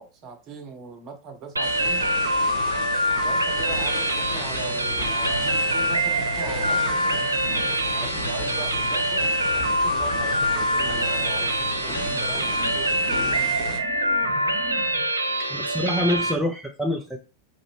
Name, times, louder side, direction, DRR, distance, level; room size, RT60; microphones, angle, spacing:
voice 1, 0.0-2.0 3.1-7.3 7.9-13.8 15.3-16.3, right 5 dB, 35° right, 5 dB, 1.0 m, -40 dB
sound 1, 1.6-13.8, left 2 dB, 40° left, 1.5 m, -34 dB
sound 2, 1.6-16.3, right 1 dB, 80° right, 0.4 m, -25 dB
sound 3, 3.5-15.0, left 1 dB, 60° left, 2.2 m, -41 dB
voice 2, 15.4-17.2, left 1 dB, ahead, 0 dB, 0.6 m, -26 dB
4.0 x 2.6 x 3.3 m, 0.32 s
figure-of-eight pair, 90°, 0 cm